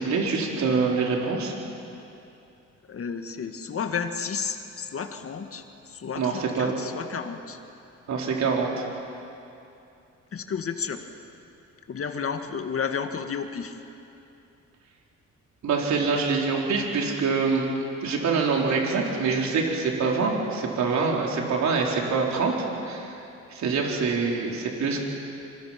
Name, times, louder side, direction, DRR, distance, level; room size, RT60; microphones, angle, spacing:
voice 1, 0.0-1.5 6.2-6.7 8.1-8.8 15.6-17.6 18.0-22.5 22.8-23.2 23.5-25.0, right 4 dB, 65° right, -1 dB, 4.4 m, -25 dB
voice 2, 2.9-7.6 10.3-11.1 11.9-13.8, left 6 dB, 50° left, 6 dB, 1.9 m, -32 dB
26.0 x 25.0 x 6.0 m, 2.7 s
cardioid pair, 90°, 30 cm